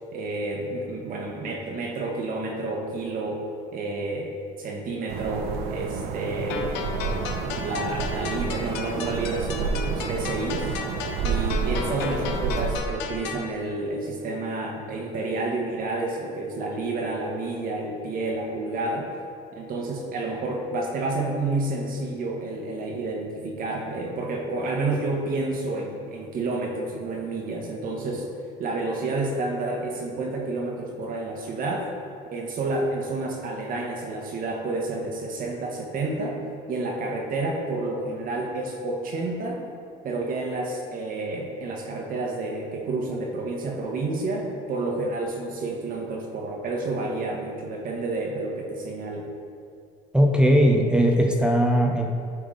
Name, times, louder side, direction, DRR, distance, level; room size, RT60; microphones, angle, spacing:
voice 1, 0.1-6.7 6.9-10.7 11.2-19.1 19.6-28.3 28.6-31.9 32.3-36.4 36.7-39.6 40.0-49.3, right 2 dB, 55° right, 1 dB, 1.1 m, -30 dB
sound 1, 5.1-12.8, right 5 dB, 70° right, 0.5 m, -30 dB
sound 2, 6.5-13.5, left 6 dB, 80° left, 0.6 m, -34 dB
voice 2, 50.1-52.1, equal, 5° right, 1 dB, 0.5 m, -19 dB
9.1 x 3.5 x 3.7 m, 2.4 s
supercardioid pair, 95°, 17 cm